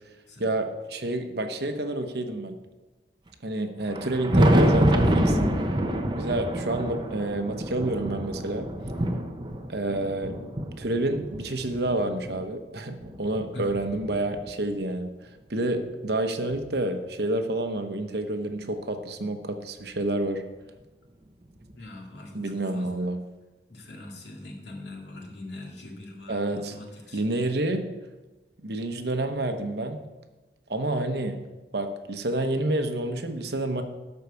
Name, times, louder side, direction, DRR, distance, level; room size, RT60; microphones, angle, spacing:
voice 1, 0.4-2.5 3.4-5.4 6.1-8.7 9.7-10.4 10.8-20.4 22.3-23.2 26.3-26.7 27.1-27.9 28.6-30.0 30.7-31.4 31.7-33.8, right 1 dB, 65° right, 7 dB, 0.9 m, -29 dB
Thunder, 3.8-12.4 13.0-14.7 15.9-16.0 16.5-16.6 18.5-18.6 19.9-20.0 21.6-21.7, right 1 dB, 25° right, 0.7 m, -26 dB
voice 2, 21.8-22.9 23.7-27.2, left 2 dB, 75° left, 0 dB, 2.1 m, -42 dB
12.0 x 4.7 x 6.9 m, 1.2 s
head